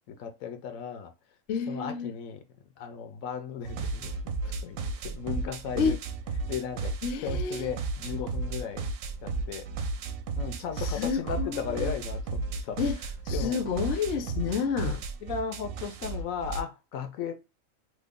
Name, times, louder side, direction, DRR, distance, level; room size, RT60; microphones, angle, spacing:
voice 1, 0.1-1.1 1.7-2.4 2.8-4.1 4.6-6.0 6.5-7.0 7.2-8.8 9.2-9.7 10.4-12.8 13.3-13.6 14.2-14.5 15.2-17.3, left 7 dB, 90° left, 1.1 m, -36 dB
voice 2, 1.5-2.2 5.8-6.0 7.0-7.6 10.8-11.9 12.8-13.0 13.3-15.0, left 6 dB, 65° left, 0.7 m, -30 dB
sound 1, 3.6-16.6, right 3 dB, 75° right, 0.9 m, -34 dB
3.1 x 2.1 x 3.5 m
omnidirectional pair, 1.4 m